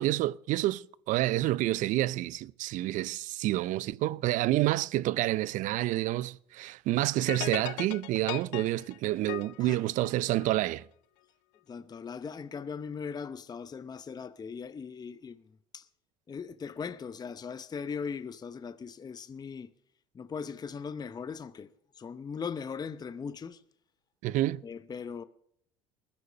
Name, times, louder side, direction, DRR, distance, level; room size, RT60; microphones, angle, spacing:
voice 1, 0.0-10.8 24.2-24.6, right 16 dB, 60° right, 0.6 m, -28 dB
sound 1, 7.3-10.7, left 20 dB, 75° left, 0.7 m, -39 dB
voice 2, 11.7-15.9 16.3-19.7 20.1-23.6 24.6-25.2, left 6 dB, 25° left, 0.8 m, -39 dB
20.0 x 12.0 x 5.7 m
hypercardioid pair, 80°, 15 cm